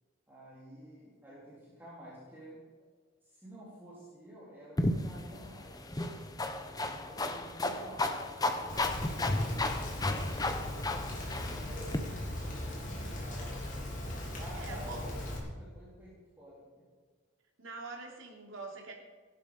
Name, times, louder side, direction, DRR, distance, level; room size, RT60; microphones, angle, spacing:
voice 1, 0.3-2.6 3.2-6.5 6.9-10.9 11.4-13.5 14.1-16.7, equal, 10° right, -8 dB, 3.6 m, -51 dB
sound 1, 4.8-12.0, left 2 dB, 20° left, 0.8 m, -33 dB
Rain, 8.7-15.4, left 1 dB, 40° left, 3.5 m, -39 dB
voice 2, 14.5-15.2 17.6-18.9, right 3 dB, 75° right, 1 dB, 3.0 m, -44 dB
16.0 x 11.5 x 5.1 m, 1.5 s
head